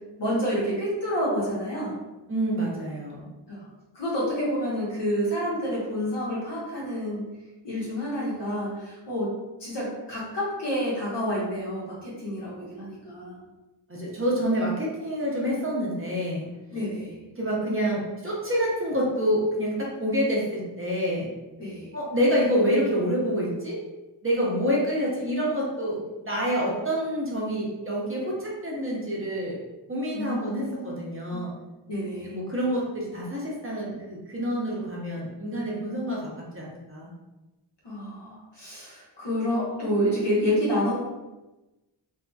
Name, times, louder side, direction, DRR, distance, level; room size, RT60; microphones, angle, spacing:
voice 1, 0.2-2.0 3.5-3.7 3.9-7.2 7.6-9.3 9.6-13.4 16.7-17.2 21.6-21.9 30.1-31.0 31.3-31.5 31.9-32.4 37.8-41.0, equal, 65° left, -6 dB, 1.1 m, -29 dB
voice 2, 2.3-3.3 13.9-16.5 17.3-21.3 21.9-23.8 24.2-29.6 29.9-31.5 32.2-37.1, equal, 30° right, -4 dB, 0.6 m, -27 dB
2.7 x 2.5 x 2.3 m, 1.1 s
wide cardioid pair, 85°, 45 cm